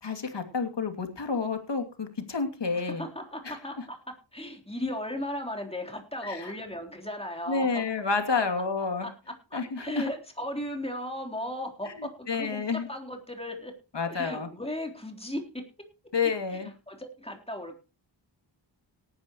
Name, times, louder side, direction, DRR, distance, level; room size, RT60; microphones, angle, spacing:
voice 1, 0.0-3.0 3.4-3.8 6.2-6.5 7.5-9.1 9.5-10.1 11.9-12.9 13.9-14.5 16.1-16.7, left 4 dB, 65° left, 6 dB, 2.7 m, -30 dB
voice 2, 2.8-7.7 8.3-8.4 9.0-13.8 14.1-15.7 16.9-17.8, left 1 dB, 15° left, 2 dB, 3.7 m, -36 dB
18.5 x 10.5 x 3.1 m, 0.30 s
wide cardioid pair, 65°, 46 cm